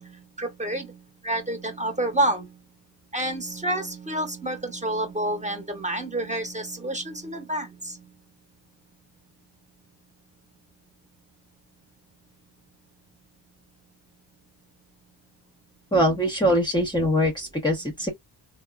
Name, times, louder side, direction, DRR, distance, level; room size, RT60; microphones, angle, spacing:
voice 1, 0.0-2.6 3.1-8.1 17.6-17.8, right 1 dB, 15° right, 1.0 m, -29 dB
voice 2, 15.9-18.1, equal, 10° left, 0.8 m, -22 dB
3.5 x 2.1 x 2.3 m
cardioid pair, 105°, 44 cm